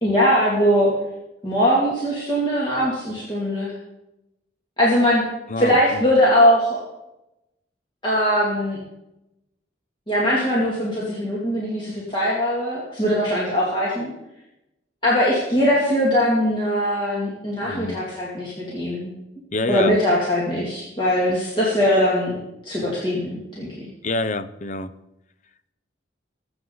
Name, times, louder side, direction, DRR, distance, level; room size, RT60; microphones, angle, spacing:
voice 1, 0.0-0.9 1.4-3.7 4.8-5.2 5.6-6.8 8.0-8.8 10.1-14.1 15.0-19.1 19.7-22.3 22.6-23.3 23.6-23.9, equal, 25° left, -6 dB, 2.5 m, -21 dB
voice 2, 5.5-6.0 17.6-18.0 19.5-19.9 24.0-24.9, left 2 dB, 40° left, 12 dB, 0.6 m, -26 dB
20.5 x 7.8 x 4.0 m, 0.92 s
head